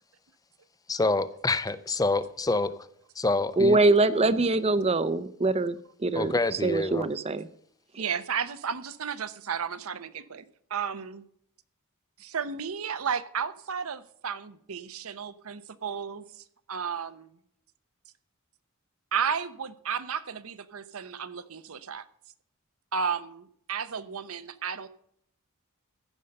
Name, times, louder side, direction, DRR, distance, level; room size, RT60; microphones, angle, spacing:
voice 1, 0.9-2.9 3.2-3.8 6.2-7.1, left 2 dB, 15° left, 14 dB, 0.5 m, -27 dB
voice 2, 3.6-6.3 6.6-7.5 7.9-8.0, right 2 dB, 30° right, 15 dB, 0.6 m, -24 dB
voice 3, 8.0-11.2 12.2-17.3 19.1-22.1 22.9-24.9, right 6 dB, 80° right, 13 dB, 0.8 m, -33 dB
15.0 x 5.5 x 6.5 m, 0.68 s
head